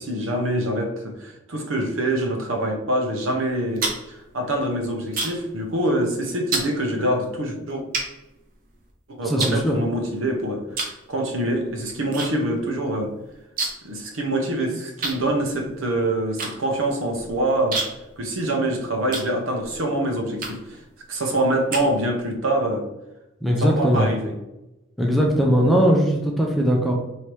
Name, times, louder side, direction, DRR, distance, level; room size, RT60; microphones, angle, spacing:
voice 1, 0.0-7.8 9.2-13.1 13.8-17.8 18.2-20.8 21.1-22.9 23.6-24.3, right 1 dB, 75° right, 2 dB, 0.8 m, -25 dB
sound 1, 3.5-5.6 5.8-6.1 6.5-6.7 7.4-7.5 7.9-8.9 9.4-10.3 10.7-11.0 11.3-12.3 12.6-12.7 12.9-14.0 14.2-14.3 15.0-19.8 20.4-20.8 21.3-22.3, right 3 dB, 40° right, 0.7 m, -30 dB
voice 2, 9.2-9.8 23.4-24.1 25.0-26.9, equal, ahead, 0 dB, 0.4 m, -19 dB
3.2 x 2.8 x 4.6 m, 0.95 s
head